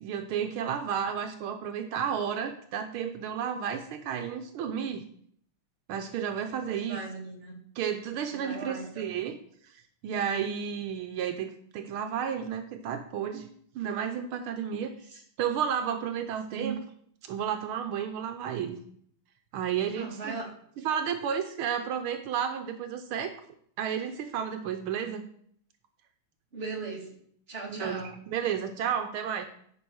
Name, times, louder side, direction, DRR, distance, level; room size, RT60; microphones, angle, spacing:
voice 1, 0.0-5.0 5.9-7.0 7.8-9.4 9.6-13.5 13.7-16.8 17.2-18.8 19.5-20.4 20.8-23.4 23.8-25.2 27.7-29.5, right 8 dB, 80° right, 7 dB, 1.6 m, -32 dB
voice 2, 6.7-7.6 8.3-9.1 15.1-15.2 16.6-16.8 19.9-20.5 26.5-27.2 27.5-28.2, right 3 dB, 30° right, -1 dB, 2.3 m, -38 dB
10.0 x 5.4 x 6.2 m, 0.64 s
omnidirectional pair, 2.3 m